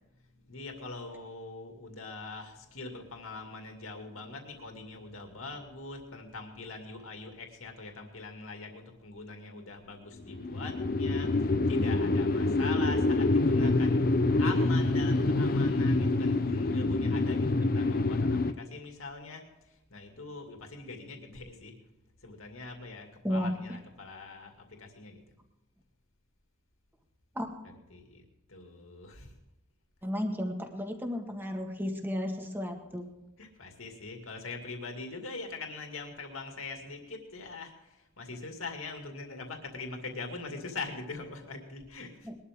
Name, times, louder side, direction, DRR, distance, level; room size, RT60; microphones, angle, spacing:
voice 1, 0.2-21.8 22.2-25.2 27.6-29.4 33.4-42.3, left 3 dB, 70° left, 3 dB, 2.4 m, -43 dB
sound 1, 10.3-18.5, left 2 dB, 45° left, 0.6 m, -26 dB
voice 2, 30.0-33.1 42.2-42.4, equal, 10° right, 3 dB, 1.7 m, -33 dB
21.0 x 12.5 x 3.7 m, 0.96 s
head